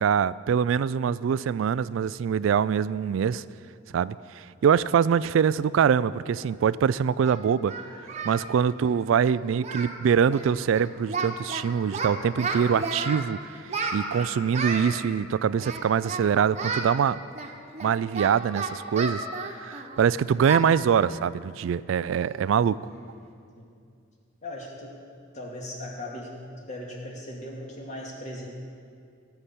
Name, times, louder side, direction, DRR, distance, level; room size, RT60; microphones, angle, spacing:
voice 1, 0.0-3.4 3.9-7.7 8.2-13.4 13.9-17.2 17.8-19.2 19.6-22.8, right 7 dB, 80° right, 18 dB, 0.3 m, -24 dB
Singing, 6.4-6.5 7.2-8.5 8.7-8.9 9.2-9.4 9.6-10.0 10.3-10.5 10.7-11.6 11.9-13.2 13.7-14.9 15.6-16.2 16.6-16.9 17.4-20.0 20.5-20.7 21.0-21.2 21.6-21.7 22.2-22.5, right 4 dB, 35° right, 1.2 m, -32 dB
voice 2, 8.3-8.6 20.0-20.2 23.6-23.7 24.4-24.9 25.3-26.3 26.6-28.5, left 1 dB, 40° left, -1 dB, 2.2 m, -39 dB
17.5 x 5.9 x 8.3 m, 2.3 s
head